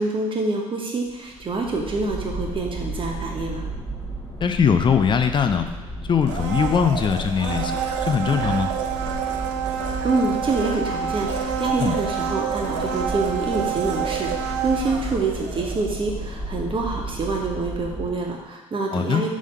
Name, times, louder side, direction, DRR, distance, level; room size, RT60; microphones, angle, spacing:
voice 1, 0.0-3.6 10.0-19.3, right 3 dB, 30° right, 0 dB, 1.4 m, -26 dB
sound 1, 1.1-18.4, right 1 dB, 10° left, 1.3 m, -33 dB
voice 2, 4.4-5.7 6.1-7.8 8.1-8.7 11.8-12.0 18.9-19.2, left 6 dB, 30° left, 8 dB, 0.6 m, -21 dB
Domestic sounds home sounds, 6.2-16.2 16.5-16.6, right 7 dB, 65° right, 0.7 m, -28 dB
6.2 x 3.5 x 5.5 m, 1.2 s
figure-of-eight pair, 55°, 17 cm